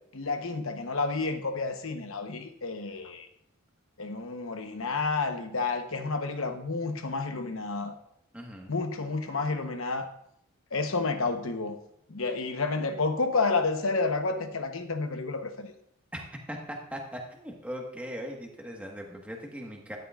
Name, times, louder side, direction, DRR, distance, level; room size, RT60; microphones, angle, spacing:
voice 1, 0.1-3.3 4.0-7.9 8.7-10.1 10.7-11.8 12.1-15.7, left 3 dB, 65° left, 6 dB, 1.0 m, -30 dB
voice 2, 8.3-8.7 16.1-20.0, equal, 5° right, 0 dB, 1.5 m, -39 dB
13.0 x 10.5 x 2.5 m, 0.72 s
head